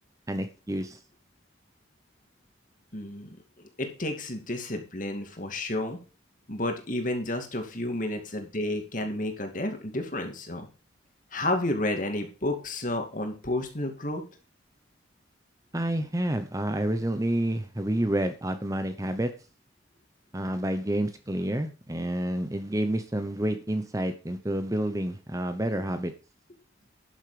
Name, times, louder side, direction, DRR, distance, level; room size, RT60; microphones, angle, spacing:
voice 1, 0.3-1.0 15.7-19.3 20.3-26.1, right 1 dB, 15° right, 9 dB, 0.9 m, -29 dB
voice 2, 2.9-3.4 3.8-6.0 6.5-10.7 11.3-14.2, left 1 dB, 45° left, 5 dB, 2.4 m, -31 dB
12.0 x 7.3 x 5.1 m, 0.34 s
head